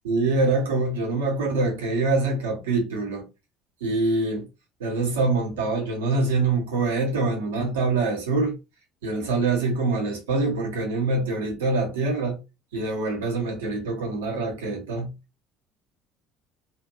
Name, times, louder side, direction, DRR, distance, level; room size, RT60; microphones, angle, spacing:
voice 1, 0.0-3.2 3.8-4.5 4.8-8.6 9.0-12.4 12.7-15.1, right 3 dB, 75° right, 0.9 m, -25 dB
2.7 x 2.5 x 2.6 m
figure-of-eight pair, 60°, 0 cm